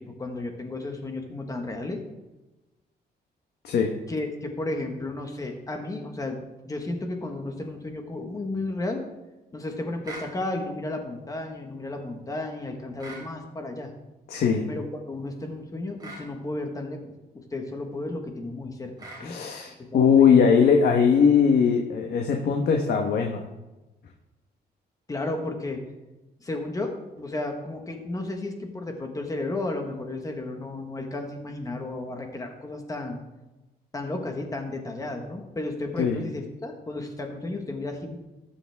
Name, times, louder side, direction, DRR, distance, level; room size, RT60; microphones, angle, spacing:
voice 1, 0.2-2.0 4.1-6.4 6.6-9.0 9.5-13.9 14.7-19.3 19.9-20.5 25.1-25.8 26.4-33.2 33.9-38.2, left 2 dB, 20° left, 3 dB, 1.4 m, -33 dB
sound 1, 10.0-10.3 13.0-13.3 16.0-16.3 19.0-19.3, right 2 dB, 25° right, 4.1 m, -40 dB
voice 2, 14.3-14.6 19.2-23.4 36.0-36.2, left 6 dB, 70° left, 3 dB, 1.2 m, -20 dB
19.5 x 7.2 x 3.5 m, 1.1 s
wide cardioid pair, 165°, 17 cm